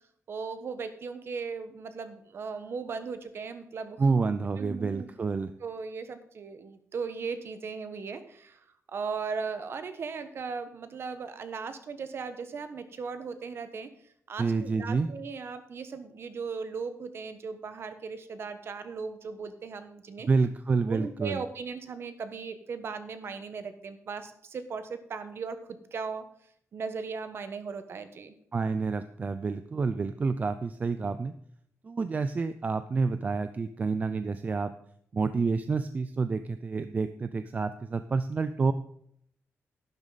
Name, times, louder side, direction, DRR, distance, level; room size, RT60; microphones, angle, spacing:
voice 1, 0.3-4.3 4.6-5.3 5.6-8.6 8.9-13.9 14.3-20.3 20.8-25.6 25.9-26.2 26.7-28.4, right 5 dB, 50° right, 10 dB, 1.2 m, -37 dB
voice 2, 4.0-5.5 14.4-15.1 20.3-21.4 28.5-31.3 31.8-34.7 35.1-38.7, right 4 dB, 30° right, 11 dB, 0.4 m, -28 dB
11.5 x 11.0 x 4.0 m, 0.68 s
wide cardioid pair, 160°, 5 cm